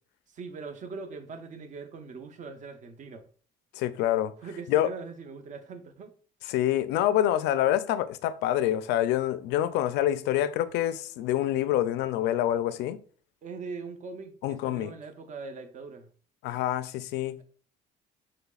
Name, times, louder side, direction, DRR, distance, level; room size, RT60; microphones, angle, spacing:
voice 1, 0.3-3.3 4.4-6.1 13.4-16.1, right 4 dB, 45° right, 0.7 m, -41 dB
voice 2, 3.7-4.3 4.7-4.9 6.5-13.0 14.4-14.9 16.4-17.4, left 12 dB, 90° left, 0.4 m, -26 dB
5.8 x 3.2 x 2.3 m
cardioid pair, 110°, 17 cm